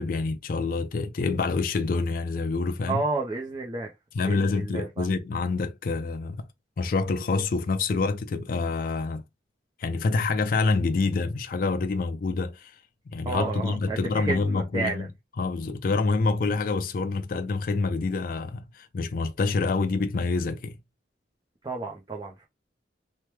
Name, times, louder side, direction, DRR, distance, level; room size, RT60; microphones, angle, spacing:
voice 1, 0.0-3.0 4.1-6.5 6.8-9.2 9.8-12.7 13.1-15.1 15.4-20.8, left 3 dB, 50° left, 0.4 m, -27 dB
voice 2, 2.9-3.9 4.2-5.1 13.3-15.1 21.6-22.5, right 3 dB, 25° right, 0.5 m, -31 dB
3.0 x 2.1 x 3.2 m
head